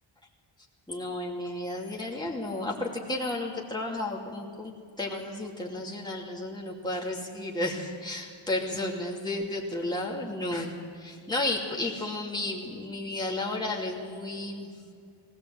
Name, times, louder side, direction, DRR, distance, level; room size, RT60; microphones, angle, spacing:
voice 1, 0.9-14.7, left 2 dB, 10° left, -3 dB, 2.7 m, -33 dB
20.0 x 17.5 x 7.8 m, 2.2 s
wide cardioid pair, 120°, 47 cm